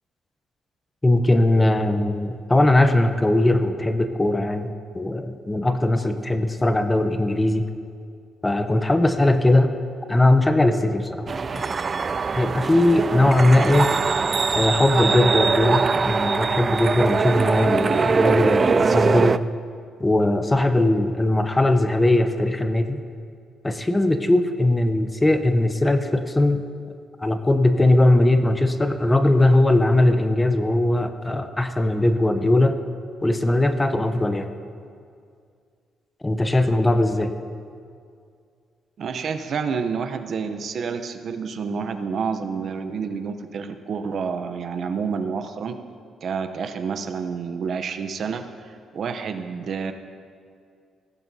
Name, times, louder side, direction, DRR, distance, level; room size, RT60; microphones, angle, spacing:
voice 1, 1.0-7.7 8.4-9.7 10.1-11.3 11.5-11.7 12.3-13.9 14.5-19.4 20.0-23.0 23.6-26.6 27.2-32.8 33.2-34.5 36.2-37.3, left 1 dB, 15° left, 8 dB, 0.8 m, -20 dB
sound 1, 11.3-19.4, right 5 dB, 35° right, 0.3 m, -22 dB
voice 2, 39.0-45.7 46.2-49.9, right 5 dB, 60° right, 8 dB, 0.7 m, -29 dB
16.5 x 14.0 x 2.8 m, 2.3 s
cardioid pair, 90°, 0 cm